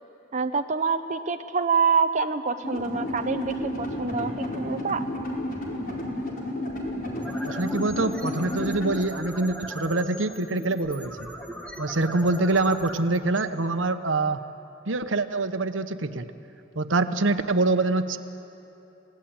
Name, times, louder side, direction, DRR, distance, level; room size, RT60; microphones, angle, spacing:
voice 1, 0.3-5.0, right 5 dB, 40° right, 6 dB, 0.7 m, -26 dB
sound 1, 2.6-9.0, left 1 dB, 50° left, 4.8 m, -31 dB
sound 2, 7.2-14.2, equal, 5° left, 1.8 m, -40 dB
voice 2, 7.5-11.3 11.8-14.4 14.9-16.2 16.8-18.2, right 2 dB, 80° right, 9 dB, 1.1 m, -25 dB
29.5 x 18.0 x 8.8 m, 3.0 s
head